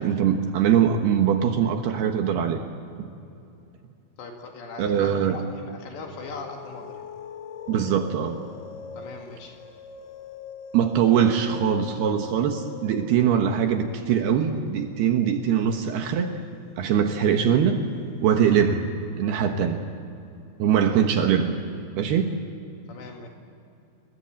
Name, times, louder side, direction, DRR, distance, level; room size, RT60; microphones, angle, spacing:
voice 1, 0.0-2.6 3.0-3.1 4.8-5.4 7.7-8.4 10.7-16.3 16.8-17.8 18.2-19.8 20.6-21.6 22.0-22.3, right 8 dB, 70° right, 5 dB, 3.0 m, -22 dB
voice 2, 4.2-7.1 9.0-9.6 22.9-23.3, left 3 dB, 70° left, 2 dB, 4.2 m, -40 dB
sound 1, 6.1-18.9, left 7 dB, 90° left, 3.9 m, -44 dB
29.0 x 21.0 x 8.8 m, 2.7 s
omnidirectional pair, 5.2 m